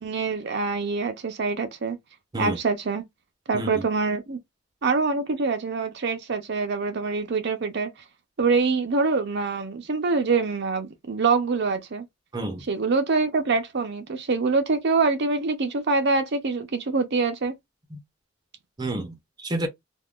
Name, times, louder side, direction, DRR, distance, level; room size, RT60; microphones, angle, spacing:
voice 1, 0.0-2.0 2.4-3.0 3.5-4.4 4.8-7.9 8.4-12.0 12.7-17.5, right 4 dB, 60° right, 0.6 m, -25 dB
voice 2, 3.5-3.8 12.3-12.7 17.9-18.0 18.8-19.7, right 1 dB, 20° right, 0.7 m, -30 dB
3.5 x 2.3 x 2.3 m
head